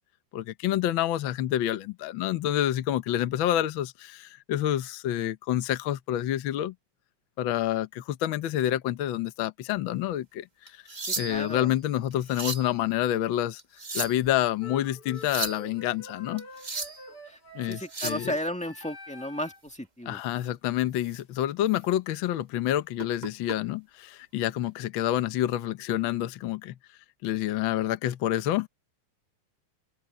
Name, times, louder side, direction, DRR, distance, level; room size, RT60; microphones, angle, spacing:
voice 1, 0.3-6.7 7.4-10.8 11.2-13.6 13.9-16.4 17.5-18.3 20.1-26.7 27.2-28.7, left 12 dB, 70° left, 1.2 m, -28 dB
sound 1, 10.7-11.6 12.1-12.7 13.6-14.3 15.1-15.6 16.4-17.0 17.7-18.3 20.3-20.5 21.0-21.2 21.7-21.8 23.0-23.6 24.7-24.9, right 3 dB, 30° right, 0.7 m, -35 dB
voice 2, 11.1-11.7 17.3-17.4 17.6-20.2, equal, 5° left, 1.2 m, -34 dB
sound 2, 14.6-19.7, left 1 dB, 50° left, 5.3 m, -46 dB
omnidirectional pair, 3.3 m